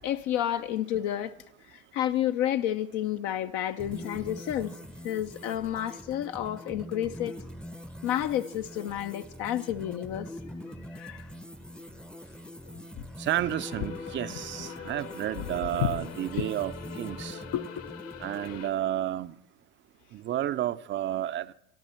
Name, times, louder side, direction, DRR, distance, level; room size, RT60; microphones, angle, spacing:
voice 1, 0.0-1.3 1.7-4.8 5.0-7.4 8.0-10.3 10.8-11.3 12.7-13.1 14.7-14.8 15.4-15.5 15.8-16.0 16.3-16.5 17.5-17.9, left 12 dB, 50° left, 0.7 m, -30 dB
sound 1, 3.8-18.6, equal, ahead, 0.7 m, -43 dB
sound 2, 13.2-18.7, left 8 dB, 70° left, 2.8 m, -43 dB
voice 2, 13.2-17.4 18.2-19.3 20.1-21.5, right 12 dB, 30° right, 0.6 m, -31 dB
26.0 x 11.5 x 4.4 m
hypercardioid pair, 90°, 39 cm